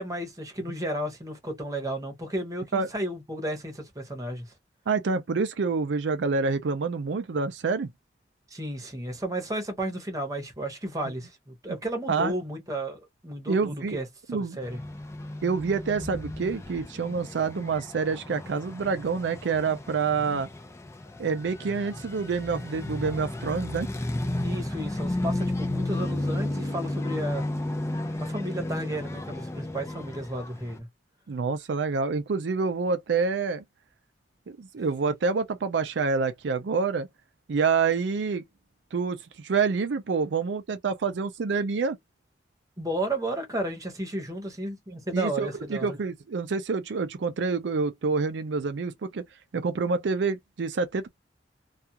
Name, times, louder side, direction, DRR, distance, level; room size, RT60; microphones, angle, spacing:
voice 1, 0.0-4.4 8.5-14.0 14.3-14.8 24.4-27.4 28.2-30.9 42.8-46.0, right 1 dB, 20° right, 0.9 m, -33 dB
voice 2, 4.9-7.9 12.1-12.3 13.5-14.0 14.3-14.6 15.4-20.5 21.2-23.9 31.3-33.6 34.6-37.1 37.5-38.4 38.9-42.0 45.1-49.2 49.5-51.1, right 4 dB, 80° right, 0.4 m, -27 dB
sound 1, 14.6-30.8, left 1 dB, 15° left, 0.4 m, -33 dB
2.4 x 2.3 x 2.7 m
head